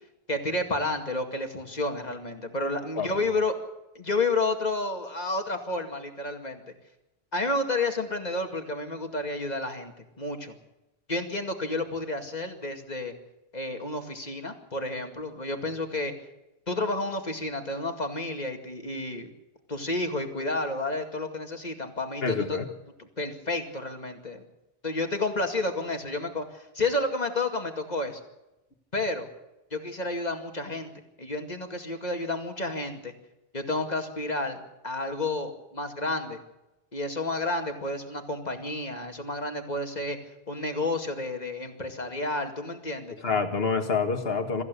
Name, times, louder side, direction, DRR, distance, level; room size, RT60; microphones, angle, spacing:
voice 1, 0.3-3.5 3.9-6.6 7.3-10.5 11.1-13.1 13.5-16.1 16.7-19.3 19.7-22.6 23.0-24.4 24.8-28.2 28.9-29.3 29.7-30.9 31.2-33.1 33.5-34.6 34.8-36.4 36.9-40.2 40.5-43.1, left 2 dB, 40° left, 5 dB, 2.4 m, -30 dB
voice 2, 22.2-22.7 43.2-44.6, left 4 dB, 70° left, 6 dB, 2.0 m, -27 dB
23.5 x 14.5 x 8.3 m, 0.94 s
omnidirectional pair, 1.0 m